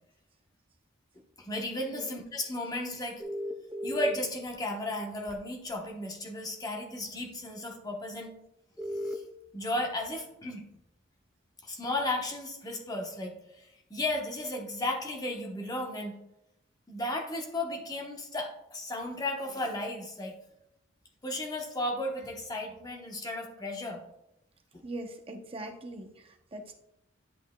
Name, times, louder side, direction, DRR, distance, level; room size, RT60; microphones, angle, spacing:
voice 1, 1.4-3.2 3.8-8.3 9.0-9.2 9.5-10.6 11.6-16.2 16.9-20.3 21.2-24.0, left 1 dB, 20° left, 1 dB, 1.0 m, -34 dB
sound 1, 3.2-4.1 5.3-5.4 8.8-9.1, left 1 dB, 5° right, 0.4 m, -34 dB
voice 2, 24.8-26.7, right 1 dB, 25° right, 4 dB, 0.7 m, -41 dB
10.5 x 5.9 x 2.3 m, 0.83 s
head